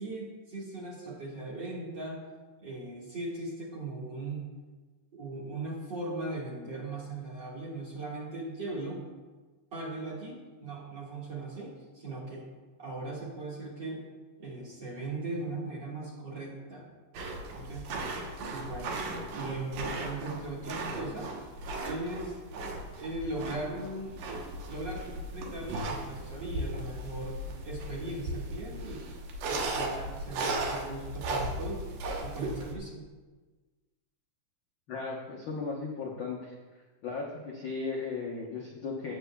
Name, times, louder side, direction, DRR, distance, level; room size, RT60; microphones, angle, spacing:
voice 1, 0.0-2.2 2.6-4.5 5.1-9.0 9.7-12.5 12.8-14.1 14.4-16.9 17.5-17.9 18.5-18.9 19.3-21.3 21.8-22.4 23.0-24.2 24.6-29.0 29.5-31.8 32.2-33.0, right 2 dB, 40° right, -5 dB, 1.9 m, -38 dB
milking the goat, 17.1-32.7, right 2 dB, 80° right, 2.6 m, -37 dB
voice 2, 34.9-36.5 37.0-39.1, left 4 dB, 65° left, -3 dB, 1.2 m, -36 dB
17.0 x 8.0 x 2.3 m, 1.3 s
omnidirectional pair, 3.7 m